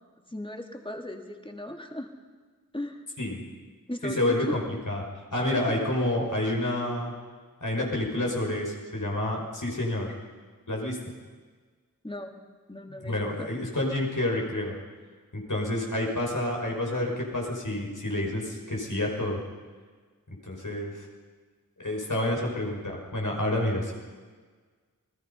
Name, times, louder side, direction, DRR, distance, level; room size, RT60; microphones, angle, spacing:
voice 1, 0.3-2.1 2.7-3.0 3.9-4.5 5.3-5.7 12.0-12.4 12.7-13.5 20.7-20.8, left 1 dB, 15° left, 3 dB, 2.9 m, -37 dB
voice 2, 4.0-4.6 4.9-5.0 5.3-7.1 7.6-10.1 10.7-11.0 13.1-14.7 15.3-19.4 20.5-21.1 21.8-23.9, left 1 dB, 60° left, -1 dB, 5.9 m, -28 dB
29.0 x 19.5 x 5.6 m, 1.5 s
wide cardioid pair, 50°, 35 cm